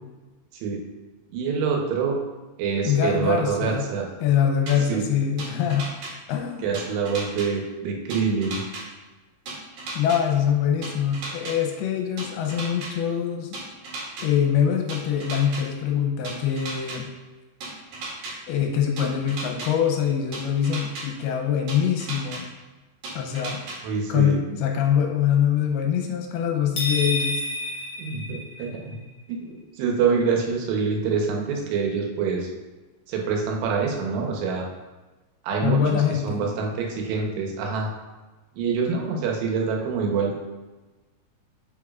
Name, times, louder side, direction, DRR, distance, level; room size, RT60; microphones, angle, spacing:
voice 1, 1.3-2.2 2.6-4.1 4.9-5.1 6.6-8.6 23.8-24.4 28.0-29.0 29.3-32.5 33.1-34.6 35.4-37.9 38.6-40.3, right 5 dB, 90° right, 0 dB, 3.2 m, -26 dB
voice 2, 2.8-3.9 4.2-5.9 6.3-6.8 9.9-13.6 14.2-17.1 18.5-22.5 23.2-23.6 24.1-27.4 35.6-36.4, left 8 dB, 80° left, 3 dB, 2.5 m, -24 dB
sound 1, 4.7-4.8 5.4-6.1 6.7-7.5 8.1-8.8 9.5-10.2 10.8-11.5 12.2-12.9 13.5-14.2 14.9-15.6 16.2-17.0 17.6-18.3 19.0-19.7 20.3-21.0 21.7-22.4 23.0-23.8, right 3 dB, 60° right, 2.9 m, -34 dB
sound 2, 26.8-28.9, left 1 dB, 50° left, 2.5 m, -29 dB
8.4 x 6.1 x 2.4 m, 1.2 s
omnidirectional pair, 4.7 m